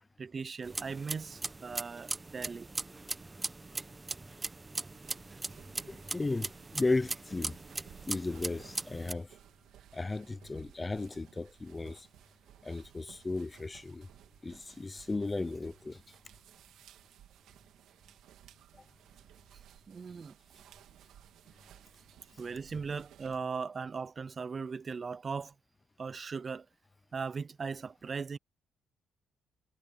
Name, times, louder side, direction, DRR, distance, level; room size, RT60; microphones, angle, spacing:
voice 1, 0.2-2.7 19.9-20.3 22.4-25.5 26.0-26.7 27.1-28.4, right 5 dB, 40° right, 0.6 m, -38 dB
sound 1, 0.6-9.1, right 3 dB, 20° right, 1.1 m, -40 dB
sound 2, 4.9-23.4, right 11 dB, 80° right, 2.8 m, -59 dB
voice 2, 5.9-7.6 8.1-9.3 9.9-12.1 12.6-14.1 14.4-16.0, left 3 dB, 20° left, 0.7 m, -35 dB
cardioid pair, 80°, 0 cm